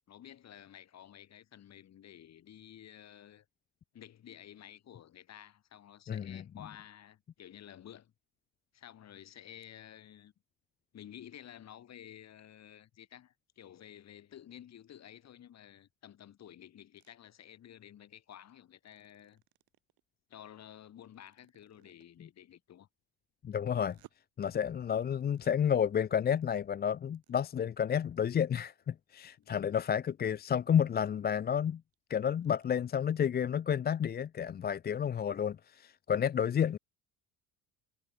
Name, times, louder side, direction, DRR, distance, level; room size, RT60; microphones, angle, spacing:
voice 1, 0.1-3.5 3.9-8.1 8.7-10.3 10.9-19.4 20.3-22.9 29.4-29.5, left 10 dB, 45° left, 2.0 m, -52 dB
voice 2, 6.1-6.4 22.2-22.3 23.4-24.0 24.4-31.8 32.1-36.8, left 8 dB, 25° left, 0.5 m, -31 dB
sound 1, 17.0-17.1 18.8-20.0 21.0-22.2 23.6-24.1 25.0-25.5 26.2-26.6 27.0-27.3 27.6-27.7 28.2-28.3 28.6-28.7 29.3-29.9 30.4-30.5 30.8-31.2 31.6-31.7 31.9-32.0 32.3-32.7, right 16 dB, 60° right, 4.6 m, -62 dB
supercardioid pair, 95°, 38 cm